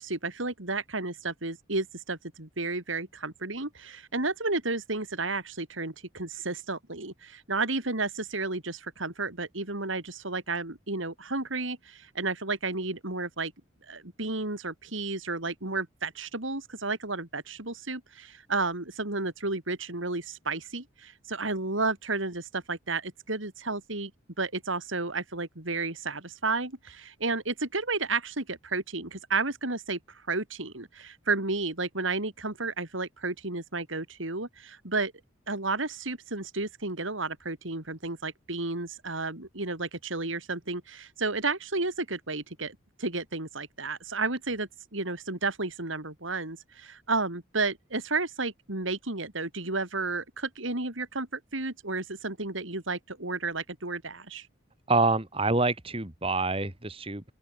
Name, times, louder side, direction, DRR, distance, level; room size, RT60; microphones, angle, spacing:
voice 1, 0.0-13.5 13.9-24.1 24.4-30.0 30.3-35.1 35.5-54.5, right 3 dB, 80° right, 3.9 m, -32 dB
voice 2, 54.9-57.2, right 3 dB, 30° right, 2.4 m, -26 dB
open air
head